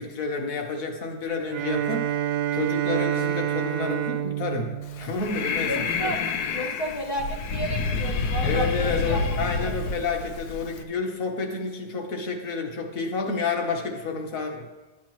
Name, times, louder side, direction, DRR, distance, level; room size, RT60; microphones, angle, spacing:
voice 1, 0.0-2.1 2.5-6.1 8.4-14.7, left 4 dB, 60° left, 3 dB, 1.4 m, -30 dB
Bowed string instrument, 1.5-5.9, right 11 dB, 85° right, 1.1 m, -28 dB
Breathing, 4.8-10.8, left 4 dB, 80° left, 1.2 m, -28 dB
voice 2, 5.6-6.2 6.5-9.2 9.6-9.9, right 1 dB, 25° left, 0 dB, 0.6 m, -32 dB
10.0 x 7.3 x 3.0 m, 1.2 s
omnidirectional pair, 1.7 m